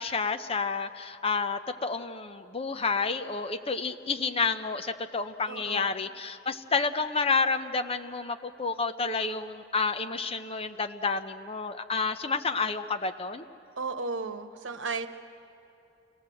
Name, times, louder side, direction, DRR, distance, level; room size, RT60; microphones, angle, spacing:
voice 1, 0.0-13.4, left 4 dB, 30° left, 8 dB, 0.8 m, -30 dB
voice 2, 5.5-5.9 13.8-15.1, right 4 dB, 85° right, 8 dB, 1.1 m, -34 dB
27.5 x 18.0 x 7.7 m, 2.9 s
head